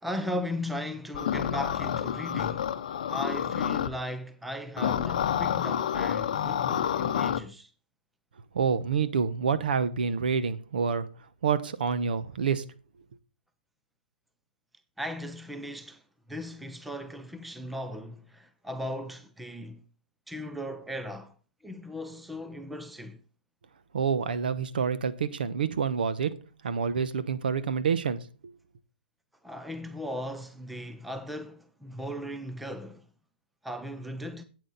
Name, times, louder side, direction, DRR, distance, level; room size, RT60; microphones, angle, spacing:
voice 1, 0.0-2.8 3.1-7.7 15.0-16.0 16.3-19.8 20.3-21.3 21.6-23.2 29.4-33.1 33.6-34.4, left 1 dB, ahead, 0.4 m, -37 dB
sound 1, 1.1-3.9 4.8-7.4, left 9 dB, 45° left, 0.7 m, -29 dB
voice 2, 8.5-11.1 11.4-12.6 23.9-26.4 26.6-28.2, right 6 dB, 65° right, 1.0 m, -27 dB
8.4 x 8.3 x 4.0 m
hypercardioid pair, 165°, 5 cm